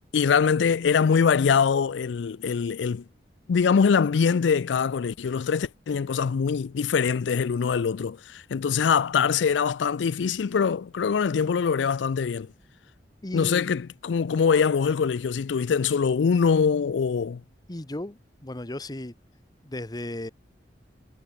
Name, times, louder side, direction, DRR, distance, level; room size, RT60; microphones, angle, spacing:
voice 1, 0.1-3.0 3.5-12.5 13.3-17.4, left 6 dB, 85° left, 0.4 m, -23 dB
voice 2, 13.2-13.7 17.7-19.1 19.6-20.3, left 1 dB, 20° left, 1.0 m, -35 dB
head